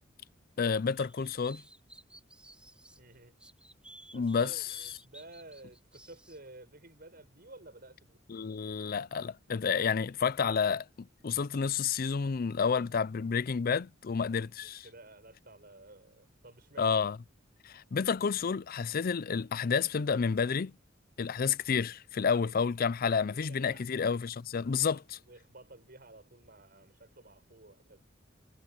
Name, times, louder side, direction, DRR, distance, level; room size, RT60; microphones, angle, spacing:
voice 1, 0.6-1.6 4.1-4.5 8.3-14.8 16.8-17.2 17.6-20.7 21.2-25.2, left 6 dB, 50° left, 0.4 m, -30 dB
sound 1, 1.0-3.0 3.4-6.4, right 1 dB, 5° right, 5.3 m, -54 dB
voice 2, 3.0-3.4 4.1-8.2 14.6-17.0 23.3-23.9 24.8-28.0, right 2 dB, 50° right, 7.4 m, -53 dB
head